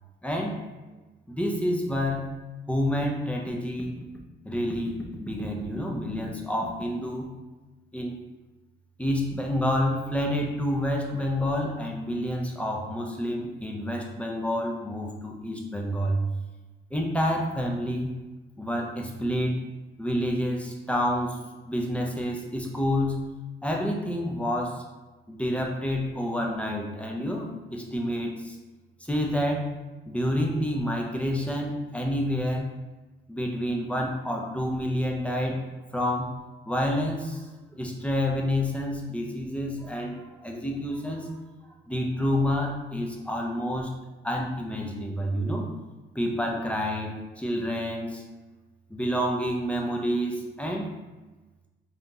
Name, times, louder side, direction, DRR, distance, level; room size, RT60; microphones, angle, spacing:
voice 1, 0.2-0.6 1.3-2.3 2.7-4.0 4.4-7.3 7.9-8.2 9.0-16.2 16.9-18.1 18.6-19.6 20.0-21.4 21.6-23.2 23.6-24.8 25.3-28.6 29.1-29.7 30.1-32.7 33.3-35.6 35.9-36.4 36.7-37.5 37.7-41.4 41.9-43.9 44.2-45.7 46.1-48.2 48.9-50.9, equal, 5° left, -1 dB, 0.6 m, -28 dB
2.8 x 2.5 x 3.7 m, 1.2 s
cardioid pair, 90°, 20 cm